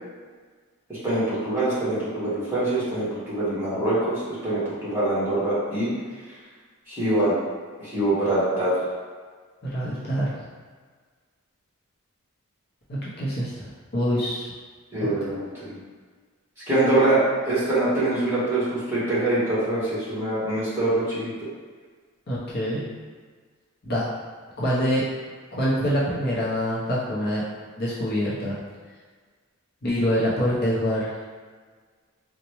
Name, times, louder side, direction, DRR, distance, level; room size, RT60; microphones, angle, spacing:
voice 1, 0.9-5.9 6.9-7.3 7.8-8.8 14.9-15.8 16.7-21.3, right 2 dB, 10° right, -11 dB, 1.4 m, -24 dB
voice 2, 9.6-10.4 12.9-14.5 15.0-15.1 22.3-22.9 23.8-24.1 24.6-25.0 25.5-27.4 27.8-28.6 29.8-31.3, equal, 50° left, -7 dB, 0.7 m, -25 dB
4.0 x 2.2 x 3.0 m, 1.5 s
head